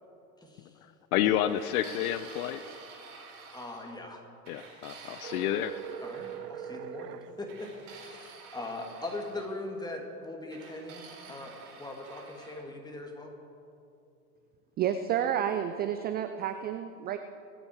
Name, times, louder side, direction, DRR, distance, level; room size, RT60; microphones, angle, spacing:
voice 1, 0.4-0.7 1.4-1.5 3.5-4.2 6.0-13.4, left 2 dB, 10° left, 1 dB, 2.4 m, -41 dB
voice 2, 1.1-2.6 4.5-5.8, left 12 dB, 65° left, 13 dB, 0.7 m, -29 dB
sound 1, 1.5-4.0 4.5-6.4 7.5-9.5 10.5-12.6, right 4 dB, 50° right, 4.3 m, -49 dB
sound 2, 5.2-7.3, right 10 dB, 75° right, 0.9 m, -41 dB
voice 3, 14.8-17.2, right 9 dB, 20° right, 9 dB, 0.4 m, -30 dB
23.5 x 8.9 x 4.6 m, 2.7 s
hypercardioid pair, 95°, 48 cm